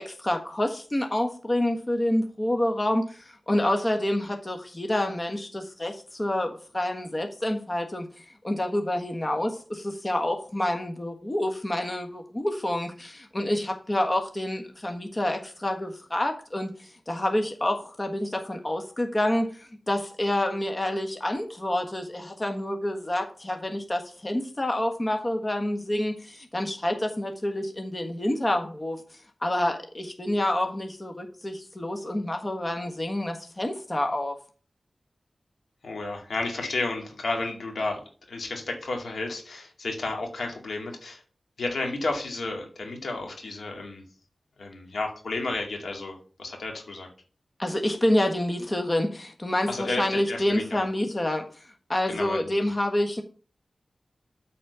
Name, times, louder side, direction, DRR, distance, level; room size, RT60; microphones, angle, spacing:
voice 1, 0.0-29.0 29.4-34.3 47.6-53.2, left 1 dB, 30° left, 4 dB, 1.4 m, -28 dB
voice 2, 35.8-38.0 38.3-41.2 41.6-44.0 44.6-47.1 49.7-50.8 52.1-52.7, left 2 dB, 85° left, 2 dB, 2.2 m, -32 dB
8.6 x 4.3 x 6.8 m, 0.40 s
cardioid pair, 55°, 0 cm